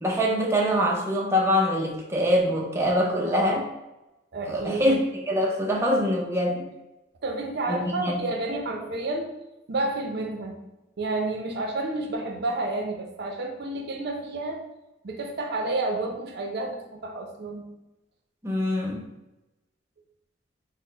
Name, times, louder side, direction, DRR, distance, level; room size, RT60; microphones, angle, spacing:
voice 1, 0.0-3.7 4.5-6.7 7.7-8.1 18.4-19.0, equal, 15° right, -2 dB, 0.5 m, -24 dB
voice 2, 4.3-4.9 7.2-9.3 9.7-10.6 11.0-14.6 15.0-17.7, right 2 dB, 60° right, 2 dB, 0.6 m, -30 dB
4.2 x 2.0 x 3.8 m, 0.96 s
head